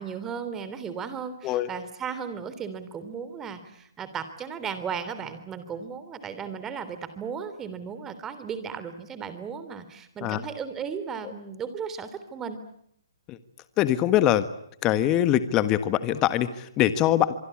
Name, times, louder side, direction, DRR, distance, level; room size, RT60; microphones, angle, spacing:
voice 1, 0.0-12.6, right 7 dB, 15° right, 11 dB, 3.3 m, -35 dB
voice 2, 13.8-14.4 14.8-17.3, left 12 dB, 25° left, 13 dB, 1.5 m, -23 dB
25.5 x 23.0 x 8.8 m, 0.71 s
hypercardioid pair, 140°, 2 cm